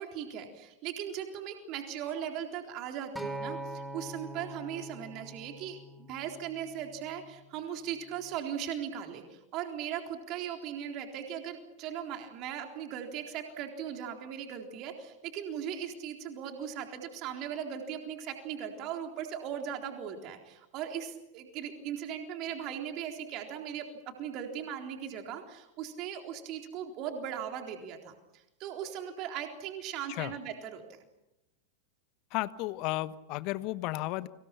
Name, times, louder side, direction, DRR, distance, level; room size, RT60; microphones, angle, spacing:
voice 1, 0.0-23.9 24.2-28.2 28.6-30.8, right 9 dB, 40° right, 3 dB, 3.9 m, -38 dB
Acoustic guitar, 3.2-7.4 8.2-8.4, right 1 dB, ahead, 4.4 m, -43 dB
voice 2, 32.3-34.3, left 18 dB, 40° left, 15 dB, 1.2 m, -33 dB
30.0 x 26.0 x 5.9 m, 0.92 s
figure-of-eight pair, 90°, 0 cm